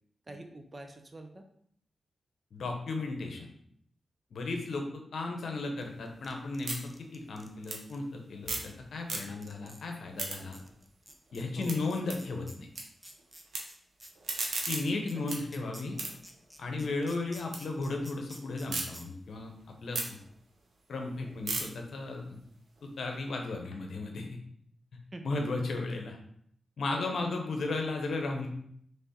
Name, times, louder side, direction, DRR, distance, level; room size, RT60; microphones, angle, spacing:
voice 1, 0.3-1.5 2.6-2.7 11.6-11.8 15.1-15.2 15.6-15.7 16.7-16.9 25.1-25.2 26.9-27.3, right 2 dB, 40° right, 4 dB, 0.6 m, -45 dB
voice 2, 2.5-3.5 4.3-10.6 11.3-12.7 14.7-16.0 16.6-19.5 19.8-20.2 20.9-22.4 22.8-24.4 25.2-26.2 26.8-28.5, left 3 dB, 75° left, 3 dB, 0.8 m, -35 dB
sound 1, 5.8-8.8 9.0-9.6 9.9-12.8 13.1-13.6 14.0-17.6 18.0-18.8 19.3-23.5, right 3 dB, 80° right, 0.9 m, -39 dB
sound 2, 6.1-8.0 8.7-8.8 9.2-9.9 10.3-10.4 10.5-18.7 18.9-19.0, equal, 5° right, 0.7 m, -51 dB
3.5 x 3.4 x 4.2 m, 0.66 s
cardioid pair, 55°, 0 cm